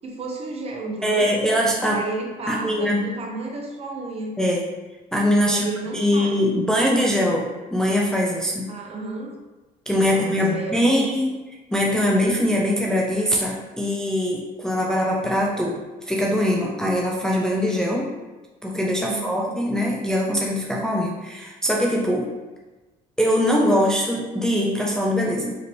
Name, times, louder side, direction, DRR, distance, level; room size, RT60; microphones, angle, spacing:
voice 1, 0.0-1.3 1.8-4.4 5.4-6.4 8.7-9.3 9.9-11.1 19.1-19.5, right 3 dB, 35° right, 0 dB, 0.9 m, -32 dB
voice 2, 1.0-2.0 2.5-3.1 4.4-4.7 5.1-5.7 5.9-8.7 9.9-11.3 11.7-15.8 16.1-18.1 18.6-22.3 23.2-25.5, equal, 5° left, -3 dB, 0.5 m, -22 dB
5.1 x 2.8 x 3.0 m, 1.2 s
cardioid pair, 110°, 17 cm